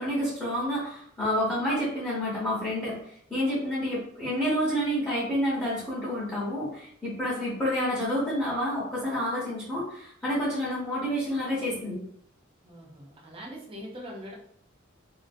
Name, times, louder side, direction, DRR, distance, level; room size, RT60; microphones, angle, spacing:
voice 1, 0.0-3.0 3.3-12.0, equal, 10° left, -9 dB, 1.0 m, -29 dB
voice 2, 12.6-14.3, equal, 30° right, -3 dB, 0.8 m, -42 dB
2.7 x 2.6 x 2.6 m, 0.65 s
head